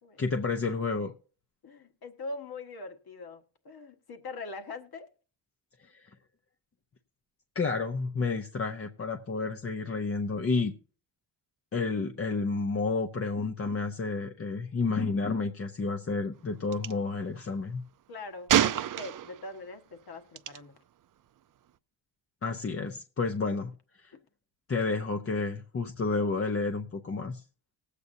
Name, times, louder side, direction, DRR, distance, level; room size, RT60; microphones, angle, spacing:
voice 1, 0.2-1.1 5.8-6.1 7.5-10.7 11.7-17.8 22.4-23.7 24.0-24.1 24.7-27.4, left 4 dB, 30° left, 0.7 m, -30 dB
voice 2, 1.6-5.1 18.1-20.7, left 3 dB, 55° left, 1.5 m, -42 dB
Gunshot gunfire, 16.7-16.9 18.5-19.5 20.4-20.6, right 11 dB, 45° right, 0.4 m, -26 dB
19.5 x 8.2 x 2.7 m
wide cardioid pair, 130°, 45 cm